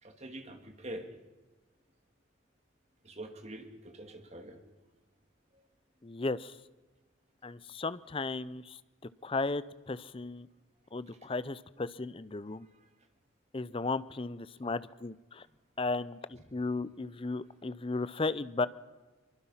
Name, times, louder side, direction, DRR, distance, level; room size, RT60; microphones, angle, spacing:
voice 1, 0.0-1.1 3.0-4.6, right 1 dB, 35° right, 5 dB, 2.5 m, -44 dB
voice 2, 6.0-6.6 7.4-8.8 9.2-10.5 10.9-12.7 13.5-15.5 15.8-18.7, left 3 dB, 25° left, 16 dB, 0.6 m, -35 dB
24.5 x 23.5 x 5.7 m, 1.2 s
head